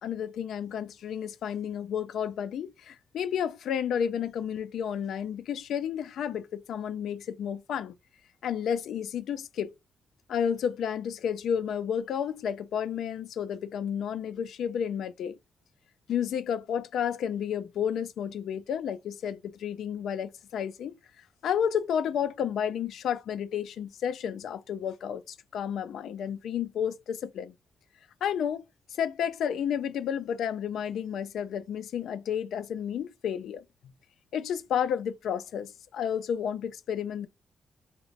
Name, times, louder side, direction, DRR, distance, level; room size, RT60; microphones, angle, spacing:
voice 1, 0.0-7.9 8.4-9.7 10.3-15.4 16.1-27.5 28.2-28.6 28.9-33.6 34.3-37.3, left 8 dB, 85° left, 0.4 m, -31 dB
3.0 x 2.2 x 4.0 m
cardioid pair, 125°, 0 cm